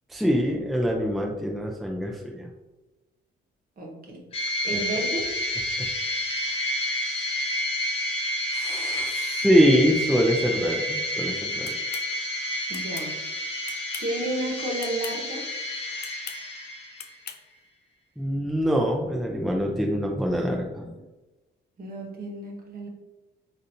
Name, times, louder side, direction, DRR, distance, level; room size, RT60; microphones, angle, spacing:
voice 1, 0.1-2.5 4.7-4.8 8.5-11.8 18.2-20.9, equal, ahead, 0 dB, 0.5 m, -24 dB
voice 2, 3.8-4.2 4.6-5.3 12.7-13.1 14.0-15.4 21.8-22.9, right 1 dB, 50° right, 0 dB, 1.0 m, -31 dB
sound 1, 4.3-17.2, left 1 dB, 30° left, 0.9 m, -30 dB
sound 2, 11.6-12.1 12.7-13.1 13.6-14.2 14.8-15.2 16.0-16.4 17.0-17.4, left 8 dB, 60° left, 0.4 m, -40 dB
4.0 x 2.5 x 2.7 m, 1.1 s
cardioid pair, 90°, 20 cm